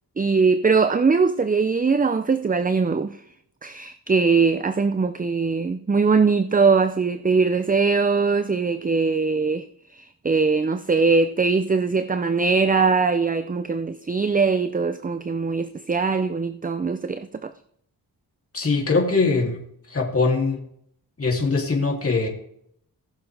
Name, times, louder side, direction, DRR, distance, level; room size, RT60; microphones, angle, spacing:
voice 1, 0.2-3.2 3.6-17.5, right 4 dB, 20° right, 0.6 m, -21 dB
voice 2, 18.5-19.6 19.9-20.6 21.2-22.3, left 3 dB, 35° left, 3.1 m, -22 dB
19.0 x 6.8 x 3.5 m
cardioid pair, 55°, 39 cm